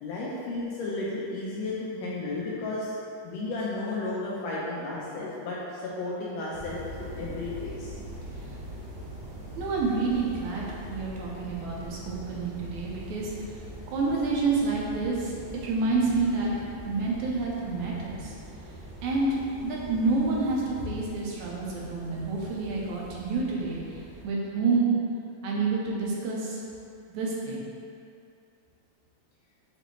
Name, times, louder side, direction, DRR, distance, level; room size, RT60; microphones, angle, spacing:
voice 1, 0.0-3.0 3.2-8.4, left 2 dB, 75° left, -6 dB, 1.6 m, -33 dB
sound 1, 6.5-24.3, equal, 60° right, 1.5 m, -43 dB
voice 2, 9.6-13.3 13.9-15.3 15.6-16.5 16.9-18.3 19.0-19.4 19.6-25.0 25.4-26.6 27.1-27.7, right 3 dB, 85° right, -4 dB, 2.1 m, -28 dB
6.6 x 2.7 x 3.0 m, 2.5 s
omnidirectional pair, 3.3 m